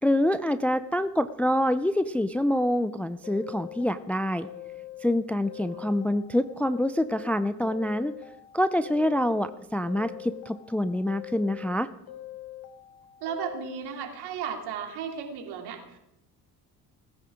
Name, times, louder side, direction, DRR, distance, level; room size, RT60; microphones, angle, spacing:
voice 1, 0.0-4.5 5.0-8.2 8.5-11.9, left 1 dB, 5° left, 13 dB, 0.5 m, -26 dB
sound 1, 3.2-5.1 5.4-7.3 7.7-9.5 9.9-11.7 12.1-14.0, left 13 dB, 50° left, 1.6 m, -43 dB
voice 2, 13.2-16.0, right 7 dB, 55° right, 3 dB, 3.1 m, -35 dB
17.5 x 15.5 x 3.7 m, 0.88 s
figure-of-eight pair, 55°, 46 cm